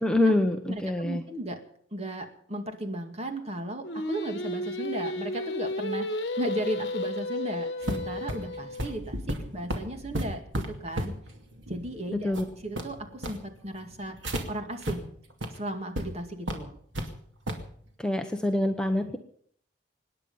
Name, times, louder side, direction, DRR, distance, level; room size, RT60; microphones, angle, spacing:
voice 1, 0.0-1.2 12.1-12.4 18.0-19.2, left 1 dB, 5° left, 4 dB, 0.9 m, -25 dB
voice 2, 0.6-1.6 1.9-11.1 11.7-14.2 14.5-15.1 15.5-16.7, right 1 dB, 35° right, 5 dB, 2.1 m, -35 dB
Singing, 3.8-9.0, left 1 dB, 60° left, 1.6 m, -33 dB
sound 1, 7.8-14.4 14.8-14.9 15.3-15.5 16.0-16.1 16.5-17.1 17.5-17.7, equal, 85° right, 2.5 m, -34 dB
25.0 x 10.0 x 5.6 m, 0.62 s
head